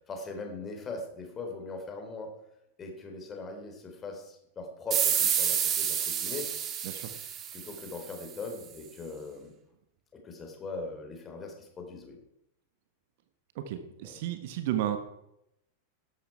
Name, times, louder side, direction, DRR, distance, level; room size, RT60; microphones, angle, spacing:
voice 1, 0.1-2.3 2.8-6.5 7.5-9.5 10.1-12.2 14.0-14.2, left 3 dB, 20° left, 2 dB, 4.0 m, -40 dB
sound 1, 4.9-8.2, right 9 dB, 30° right, 1.8 m, -29 dB
voice 2, 13.5-15.0, right 12 dB, 50° right, 8 dB, 1.5 m, -32 dB
13.5 x 11.5 x 4.8 m, 0.81 s
figure-of-eight pair, 90°, 0 cm